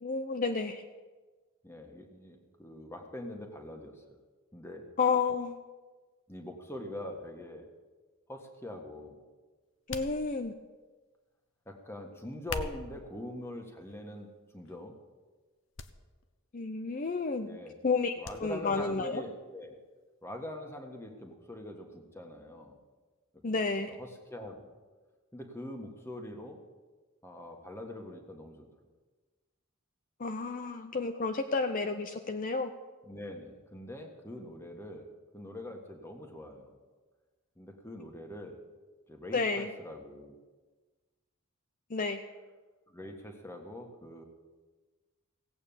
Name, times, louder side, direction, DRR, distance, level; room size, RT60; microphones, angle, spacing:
voice 1, 0.0-0.8 5.0-5.6 9.9-10.5 16.5-17.6 17.8-18.1 18.4-19.2 23.4-24.0 30.2-32.7 39.3-39.7 41.9-42.2, left 4 dB, 40° left, 6 dB, 0.6 m, -31 dB
voice 2, 1.6-4.0 4.5-4.8 6.3-7.6 8.3-9.2 11.7-14.9 17.4-17.7 18.2-19.7 20.2-22.8 24.0-24.7 25.3-26.6 27.2-28.7 33.1-35.1 35.3-36.7 37.6-38.6 39.1-40.4 42.9-44.2, left 1 dB, 10° left, 3 dB, 1.5 m, -43 dB
sound 1, 9.9-10.7 12.3-13.1 13.8-14.2 14.6-14.8 15.8-15.9 16.2-16.3 18.2-18.4 18.8-18.9, left 4 dB, 60° left, 0.9 m, -40 dB
17.0 x 8.7 x 7.1 m, 1.3 s
head